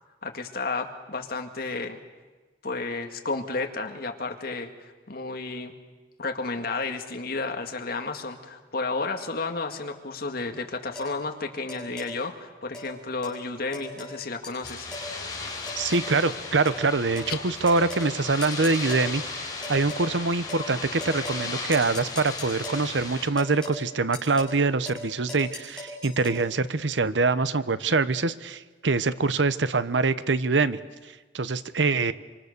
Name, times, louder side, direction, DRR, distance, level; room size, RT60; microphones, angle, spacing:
voice 1, 0.2-2.0 2.6-5.7 6.2-14.9 17.3-17.4, left 3 dB, 55° left, 4 dB, 2.1 m, -32 dB
sound 1, 10.9-11.1 11.7-12.1 12.7-12.9 13.2-13.4 13.7-14.2 14.4-15.1 15.7-16.1 16.6-16.8 17.2-17.3 17.7-18.1 18.4-19.1 19.6-20.1 20.5-20.7 21.0-21.5 21.7-22.8 23.4-23.8 24.1-24.6 24.8-25.0 25.3-26.4, left 1 dB, 5° left, 7.7 m, -38 dB
sound 2, 14.6-23.3, left 3 dB, 20° left, 4.6 m, -36 dB
voice 2, 15.8-30.8 31.3-32.1, right 3 dB, 85° right, 14 dB, 0.9 m, -24 dB
26.5 x 25.5 x 6.8 m, 1.3 s
head